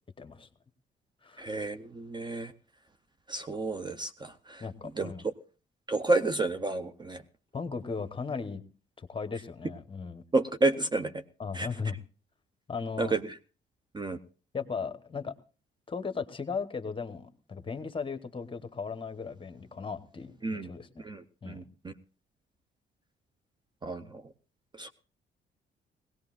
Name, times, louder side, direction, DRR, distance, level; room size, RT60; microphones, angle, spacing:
voice 1, 0.2-0.5 1.2-1.5 4.6-5.3 7.5-8.6 9.0-10.2 11.4-12.0 12.7-13.1 14.5-15.3 15.9-21.0 21.4-21.7, left 5 dB, 25° left, 11 dB, 1.0 m, -37 dB
voice 2, 1.4-2.5 3.3-4.6 5.0-5.3 5.9-7.2 10.3-11.2 11.5-11.7 13.0-13.3 13.9-14.2 20.4-20.7 21.0-21.9 23.8-24.2 24.8-24.9, right 2 dB, 20° right, 10 dB, 0.6 m, -30 dB
19.0 x 17.5 x 2.5 m, 0.36 s
cardioid pair, 90°, 20 cm